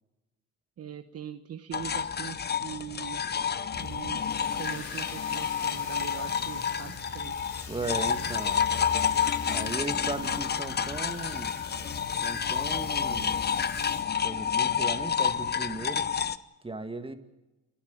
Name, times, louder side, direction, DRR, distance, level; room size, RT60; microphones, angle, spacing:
voice 1, 0.8-3.2 3.8-7.4, right 10 dB, 55° right, 9 dB, 1.1 m, -42 dB
sound 1, 1.7-16.4, left 7 dB, 35° left, 0.8 m, -29 dB
sound 2, 3.7-14.0, left 4 dB, 80° left, 5.2 m, -43 dB
voice 2, 7.7-8.6 9.5-11.5 12.2-13.4 14.2-16.1 16.6-17.1, right 3 dB, 20° right, 8 dB, 2.2 m, -37 dB
29.5 x 11.5 x 8.5 m, 1.0 s
cardioid pair, 90°, 30 cm